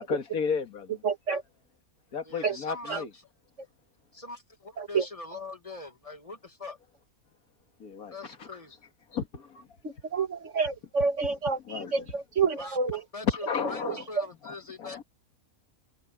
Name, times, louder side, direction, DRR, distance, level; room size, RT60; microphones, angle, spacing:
voice 1, 0.1-0.9 2.1-3.1 7.8-8.1 8.4-8.5 9.1-9.7 11.7-11.9 13.5-14.0 14.4-15.0, left 6 dB, 80° left, 2.2 m, -33 dB
voice 2, 1.0-1.4 2.4-2.6 2.9-3.0 4.8-5.1 9.8-13.0 13.8-14.3, right 5 dB, 55° right, 2.1 m, -29 dB
voice 3, 2.2-3.2 4.1-6.8 8.1-8.8 12.6-12.8 13.1-15.0, left 3 dB, 25° left, 1.9 m, -42 dB
omnidirectional pair, 1.5 m